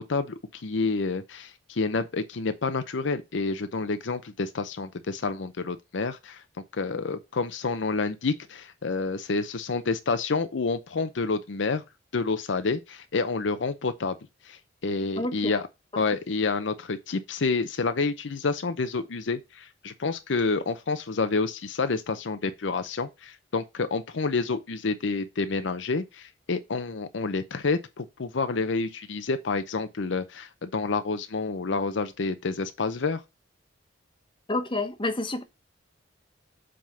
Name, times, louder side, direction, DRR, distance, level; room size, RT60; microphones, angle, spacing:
voice 1, 0.0-6.4 6.7-11.8 12.1-14.2 14.4-15.7 16.0-33.2, left 4 dB, 70° left, 0.6 m, -29 dB
voice 2, 34.5-35.4, left 2 dB, 25° left, 0.9 m, -28 dB
7.6 x 3.6 x 5.5 m
head